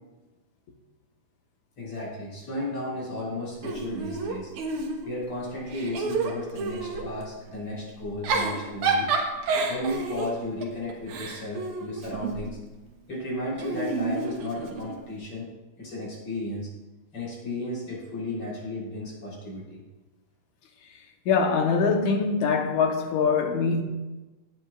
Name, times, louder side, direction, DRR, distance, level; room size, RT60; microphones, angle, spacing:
voice 1, 1.8-4.5 5.0-9.1 9.7-12.6 13.1-15.5 15.8-16.7 17.1-19.8, left 1 dB, 45° left, 4.6 m, -34 dB
Giggle / Chuckle chortle, 3.6-5.3 5.7-7.1 8.0-12.5 13.6-15.0, right 4 dB, 75° right, 2.6 m, -29 dB
voice 2, 21.3-23.8, left 5 dB, 75° left, 2.5 m, -23 dB
18.0 x 9.2 x 2.5 m
omnidirectional pair, 3.6 m